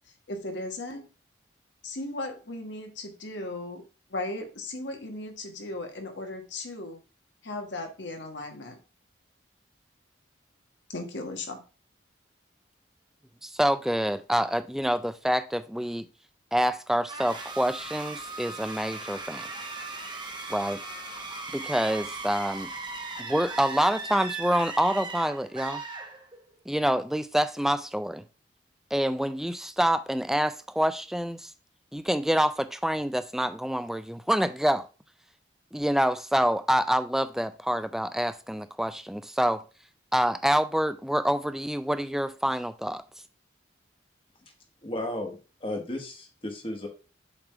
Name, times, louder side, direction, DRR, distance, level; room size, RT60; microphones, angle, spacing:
voice 1, 0.3-1.0 1.8-3.8 4.1-7.0 7.4-8.8 10.9-11.6, left 2 dB, 70° left, 1.4 m, -36 dB
voice 2, 13.4-16.1 16.5-19.5 20.5-20.8 21.5-22.7 23.2-25.8 26.7-28.2 28.9-31.5 31.9-34.9 35.7-39.6 40.1-43.0, equal, ahead, 0.3 m, -27 dB
sound 1, 17.1-26.6, right 3 dB, 25° right, 0.9 m, -38 dB
voice 3, 44.8-46.9, left 1 dB, 30° left, 1.1 m, -34 dB
7.2 x 3.5 x 4.5 m
head